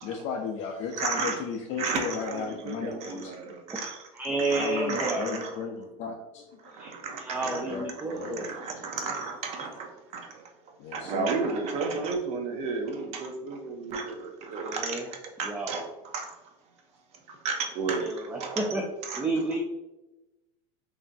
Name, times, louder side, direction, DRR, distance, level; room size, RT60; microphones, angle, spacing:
voice 1, 0.0-3.5 4.6-6.7 7.4-7.8 8.1-8.5 10.8-11.4, left 6 dB, 45° left, -1 dB, 0.5 m, -35 dB
voice 2, 0.9-1.4 1.8-4.0 4.4-5.6 6.6-7.8 8.1-10.4 10.9-15.0 15.4-15.8 16.1-16.3 17.3-18.1 18.4-18.6 19.0-19.2, right 4 dB, 40° right, 3 dB, 0.7 m, -33 dB
voice 3, 4.1-5.3 6.7-8.7 14.6-15.1 15.4-15.8 18.0-18.8 19.2-19.6, right 2 dB, 10° right, 0 dB, 0.4 m, -31 dB
5.2 x 2.7 x 2.6 m, 0.98 s
supercardioid pair, 145°, 17 cm